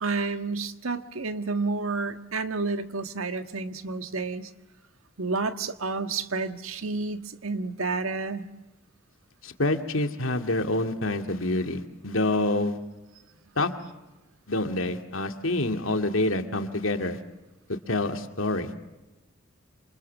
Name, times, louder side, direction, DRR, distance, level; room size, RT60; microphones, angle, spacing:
voice 1, 0.0-4.5 5.2-8.4, right 3 dB, 90° right, 9 dB, 1.6 m, -30 dB
voice 2, 9.4-12.8 13.6-13.7 14.5-17.2 17.7-18.7, left 2 dB, 75° left, 6 dB, 2.2 m, -27 dB
28.0 x 27.5 x 7.4 m, 1.1 s
head